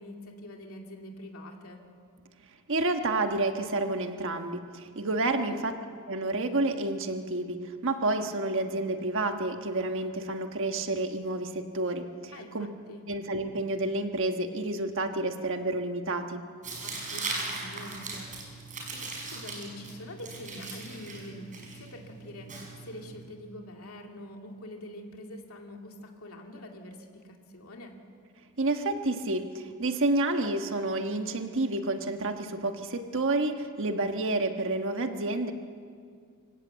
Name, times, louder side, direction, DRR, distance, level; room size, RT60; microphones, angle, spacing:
voice 1, 0.0-1.8 5.5-5.6 12.3-13.1 16.8-28.0, left 1 dB, 75° left, 2 dB, 2.5 m, -45 dB
voice 2, 2.7-5.7 6.1-12.7 13.1-16.4 28.6-35.5, right 2 dB, 65° right, 6 dB, 1.3 m, -29 dB
Tearing, 16.6-23.3, right 3 dB, 35° right, 5.3 m, -39 dB
25.5 x 16.5 x 8.1 m, 2.2 s
head